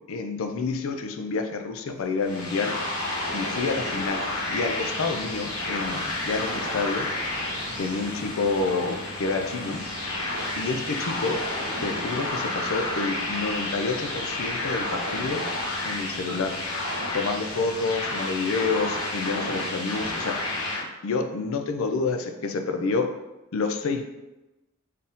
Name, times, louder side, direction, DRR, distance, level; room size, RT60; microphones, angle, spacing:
voice 1, 0.0-2.7 3.3-7.1 7.8-9.8 10.6-11.4 11.8-15.4 15.8-16.5 17.1-20.4 21.0-23.1 23.5-24.1, left 4 dB, 65° left, 6 dB, 0.4 m, -28 dB
Train, 1.6-19.4, right 1 dB, 40° right, 0.6 m, -47 dB
sound 1, 2.2-20.8, left 2 dB, 85° left, 1.1 m, -31 dB
sound 2, 6.9-7.2 8.5-8.8 10.3-10.6 11.7-12.2 13.0-13.5 14.5-15.0 15.9-16.4 17.4-18.0 18.7-19.5, left 1 dB, 20° left, 1.1 m, -48 dB
4.1 x 2.7 x 3.5 m, 0.99 s
head